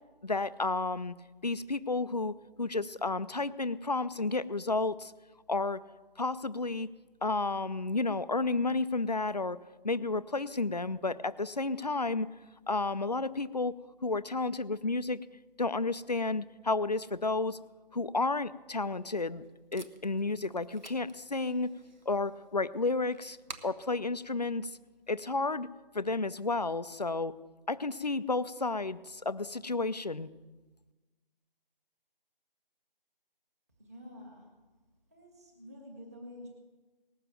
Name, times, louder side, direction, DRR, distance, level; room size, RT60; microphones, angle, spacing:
voice 1, 0.2-1.1 1.4-5.1 5.5-5.8 6.2-6.9 7.2-9.6 9.8-12.3 12.7-15.2 15.6-17.6 17.9-19.4 19.7-21.7 22.1-23.4 23.6-24.7 25.1-25.7 25.9-27.3 27.7-30.3, left 3 dB, 45° left, 15 dB, 0.4 m, -31 dB
Packing tape duct tape, 18.8-25.3, right 3 dB, 50° right, 1.0 m, -54 dB
voice 2, 33.8-34.7 35.1-36.5, left 1 dB, 15° right, -2 dB, 1.4 m, -49 dB
18.5 x 6.9 x 7.6 m, 1.2 s
figure-of-eight pair, 175°, 29 cm